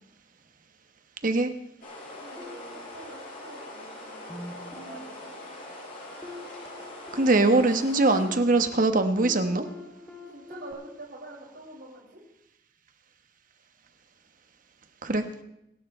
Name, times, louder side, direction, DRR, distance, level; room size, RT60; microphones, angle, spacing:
sound 1, 1.8-8.3, left 1 dB, 50° left, 5.2 m, -42 dB
voice 1, 2.0-5.3 10.3-12.2, right 2 dB, 70° right, -9 dB, 5.8 m, -46 dB
sound 2, 2.4-3.6 4.1-10.7, left 1 dB, 5° left, 3.0 m, -46 dB
voice 2, 7.1-9.6 15.0-15.2, right 2 dB, 50° right, 8 dB, 1.3 m, -22 dB
26.5 x 11.5 x 3.3 m, 0.82 s
head